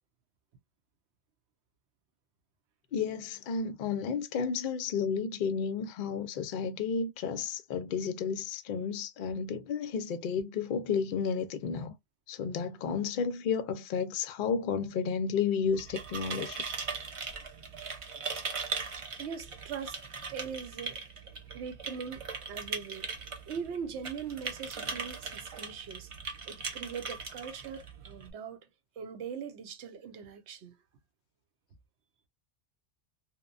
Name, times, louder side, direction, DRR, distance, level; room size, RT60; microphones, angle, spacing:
voice 1, 2.9-11.9 12.3-16.6, left 6 dB, 60° left, 0.6 m, -32 dB
sound 1, 15.6-28.3, right 5 dB, 55° right, 0.3 m, -40 dB
voice 2, 19.2-20.0 20.3-21.0 21.5-23.1 23.5-26.1 26.5-28.7 29.0-30.8, right 6 dB, 75° right, 0.9 m, -41 dB
2.9 x 2.1 x 2.5 m
omnidirectional pair, 1.2 m